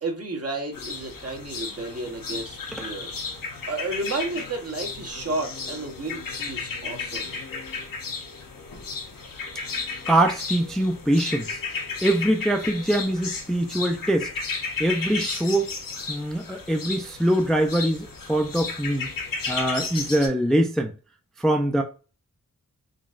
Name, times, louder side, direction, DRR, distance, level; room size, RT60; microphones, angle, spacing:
voice 1, 0.0-3.1 3.7-7.4, right 2 dB, 45° right, 1.0 m, -32 dB
sound 1, 0.7-20.3, left 4 dB, 80° left, 0.8 m, -34 dB
voice 2, 10.1-11.6 12.0-14.3 14.8-15.7 16.1-19.1 19.5-20.9 21.4-21.8, right 1 dB, ahead, 0.4 m, -23 dB
3.8 x 2.3 x 2.4 m
wide cardioid pair, 80°, 33 cm